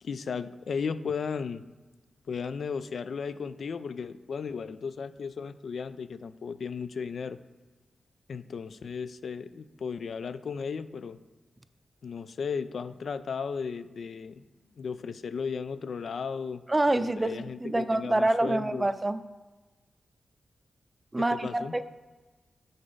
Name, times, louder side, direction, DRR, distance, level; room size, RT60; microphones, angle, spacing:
voice 1, 0.0-1.6 2.3-7.4 8.3-11.2 12.0-14.5 14.8-16.6 16.9-18.9 21.2-21.7, left 5 dB, 70° left, 13 dB, 0.3 m, -35 dB
voice 2, 16.7-19.2 21.1-21.8, right 2 dB, 25° right, 12 dB, 0.4 m, -26 dB
6.6 x 3.9 x 5.4 m, 1.3 s
cardioid pair, 50°, 0 cm